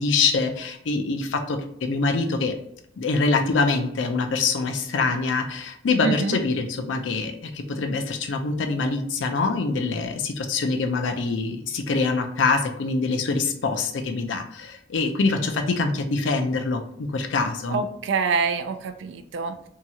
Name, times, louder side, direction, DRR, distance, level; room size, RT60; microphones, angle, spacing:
voice 1, 0.0-2.5 3.0-17.8, left 3 dB, 70° left, 5 dB, 0.5 m, -24 dB
voice 2, 6.0-6.4 17.7-19.7, right 4 dB, 65° right, 9 dB, 0.3 m, -26 dB
2.8 x 2.3 x 2.8 m, 0.71 s
head